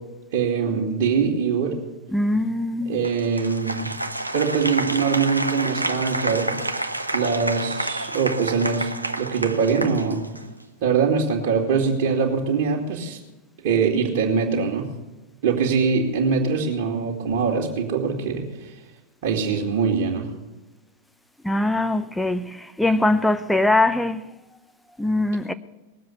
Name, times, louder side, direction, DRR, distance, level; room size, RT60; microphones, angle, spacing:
voice 1, 0.3-1.7 2.9-3.9 4.3-6.5 7.1-8.9 9.2-10.2 10.8-13.2 13.6-14.9 15.4-18.7 19.2-20.3, right 5 dB, 50° right, 2.2 m, -23 dB
voice 2, 2.1-3.0 21.4-24.3 25.0-25.5, left 2 dB, 5° left, 0.7 m, -22 dB
Applause, 3.0-10.6, right 2 dB, 85° right, 0.9 m, -29 dB
19.5 x 7.6 x 8.3 m
figure-of-eight pair, 90°, 0 cm